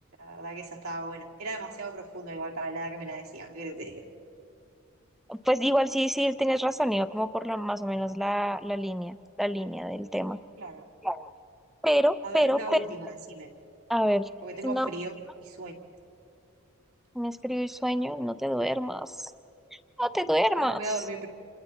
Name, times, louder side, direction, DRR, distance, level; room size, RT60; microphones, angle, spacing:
voice 1, 0.2-4.0 10.6-10.8 12.2-13.5 14.4-15.1 15.4-15.7 20.6-21.3, right 2 dB, 80° right, -1 dB, 2.5 m, -37 dB
voice 2, 5.3-10.4 11.0-11.3 11.8-12.8 13.9-14.3 14.6-14.9 17.1-19.3 20.0-20.8, equal, ahead, 11 dB, 0.4 m, -27 dB
29.5 x 28.0 x 4.1 m, 2.7 s
head